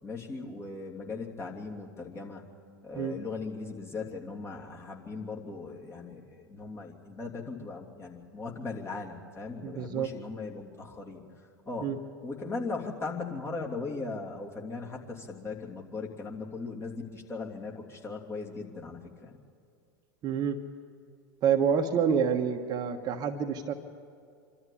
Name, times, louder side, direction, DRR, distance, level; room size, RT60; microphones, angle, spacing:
voice 1, 0.0-2.4 2.8-11.2 11.6-11.9 12.2-19.4, left 4 dB, 25° left, -1 dB, 3.0 m, -38 dB
voice 2, 9.6-10.1 11.8-12.0 20.2-20.6 21.4-23.7, right 7 dB, 40° right, 4 dB, 1.4 m, -27 dB
25.5 x 13.5 x 8.5 m, 2.3 s
hypercardioid pair, 95°, 11 cm